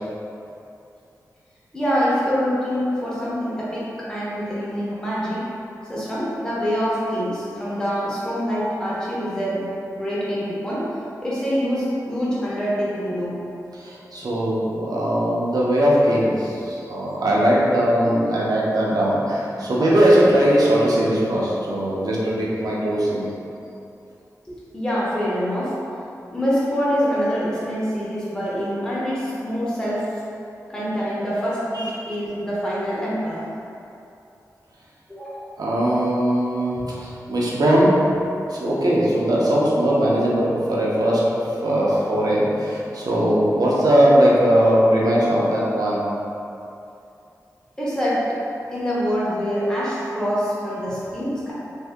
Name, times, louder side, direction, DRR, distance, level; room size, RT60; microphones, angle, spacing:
voice 1, 1.7-5.4 5.9-9.7 9.9-10.9 11.2-13.4 24.5-25.7 26.3-30.1 30.7-33.4 35.1-35.5 47.8-48.2 48.7-51.5, equal, 10° left, -8 dB, 0.9 m, -25 dB
voice 2, 13.7-23.3 31.7-32.2 35.6-37.9 38.5-41.2 41.6-46.0, equal, 70° right, -6 dB, 0.7 m, -19 dB
2.7 x 2.7 x 3.5 m, 2.7 s
wide cardioid pair, 95°, 7 cm